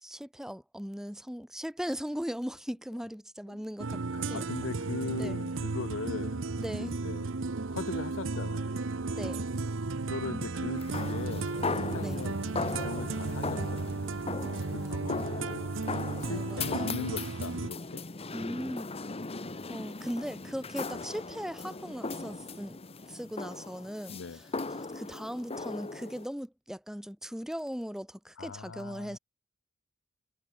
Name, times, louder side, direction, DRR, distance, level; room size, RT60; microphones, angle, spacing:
voice 1, 0.0-4.0 4.3-4.4 5.2-5.4 6.6-7.0 9.1-9.5 12.0-12.2 14.7-15.0 16.3-16.9 18.3-18.9 19.7-22.8 23.1-29.2, equal, 5° right, 1.3 m, -38 dB
sound 1, 3.8-17.7, right 3 dB, 75° right, 0.9 m, -34 dB
voice 2, 4.1-6.4 6.8-7.3 7.7-8.8 10.1-11.5 11.9-12.3 12.6-13.9 14.7-15.6 16.2-18.0 20.9-21.0 24.1-24.4 28.4-29.2, left 4 dB, 70° left, 0.6 m, -39 dB
sound 2, 10.8-26.3, left 3 dB, 30° left, 1.1 m, -38 dB
head